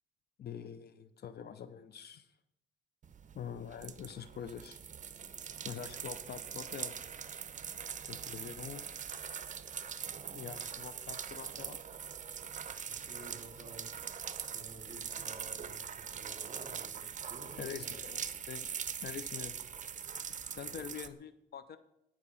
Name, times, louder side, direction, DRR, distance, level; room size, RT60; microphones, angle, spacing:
voice 1, 0.4-2.3 3.3-4.8 5.6-6.9 8.1-9.0 10.3-11.8 17.6-18.7 19.0-19.6 20.5-21.8, left 8 dB, 55° left, 13 dB, 0.6 m, -45 dB
sound 1, 3.0-21.1, right 7 dB, 40° right, 0.7 m, -42 dB
voice 2, 12.9-13.9 14.5-18.1 20.6-20.9, right 2 dB, 25° right, 0 dB, 4.6 m, -53 dB
11.5 x 5.3 x 6.9 m, 0.82 s
cardioid pair, 90°, 20 cm